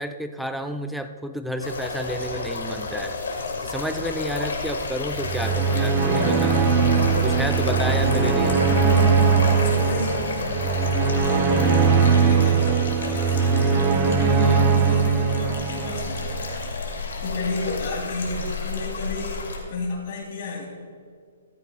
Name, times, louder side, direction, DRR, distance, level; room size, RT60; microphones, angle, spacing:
voice 1, 0.0-6.6 7.2-8.7, equal, ahead, 8 dB, 0.5 m, -31 dB
sound 1, 1.6-19.6, left 3 dB, 70° left, 2.1 m, -30 dB
sound 2, 5.2-16.5, right 5 dB, 25° right, 0.9 m, -21 dB
voice 2, 9.5-10.5 11.1-20.7, left 3 dB, 55° left, -1 dB, 2.5 m, -33 dB
14.5 x 12.5 x 2.2 m, 2.1 s
hypercardioid pair, 130°, 0 cm